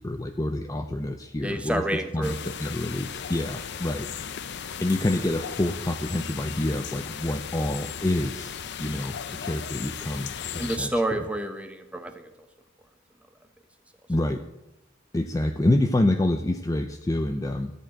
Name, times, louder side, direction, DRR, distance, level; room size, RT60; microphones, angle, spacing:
voice 1, 0.0-1.8 2.1-4.1 4.8-8.5 8.8-11.2 14.1-14.4 15.1-17.7, left 1 dB, 15° left, 6 dB, 0.5 m, -27 dB
voice 2, 1.4-2.3 10.6-12.3, right 1 dB, 5° right, 7 dB, 1.0 m, -29 dB
sound 1, 2.2-10.8, left 7 dB, 60° left, 0.6 m, -36 dB
13.0 x 4.5 x 8.7 m, 0.95 s
head